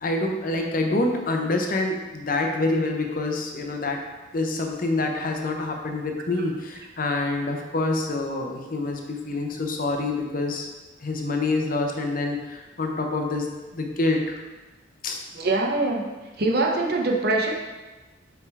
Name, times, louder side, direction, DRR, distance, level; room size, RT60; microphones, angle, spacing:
voice 1, 0.0-4.0 4.3-10.7 11.0-14.4 15.0-15.2, left 2 dB, 45° left, 2 dB, 0.7 m, -26 dB
voice 2, 15.3-16.1 16.4-17.5, right 2 dB, 55° right, 0 dB, 0.8 m, -23 dB
5.8 x 3.5 x 4.6 m, 1.2 s
head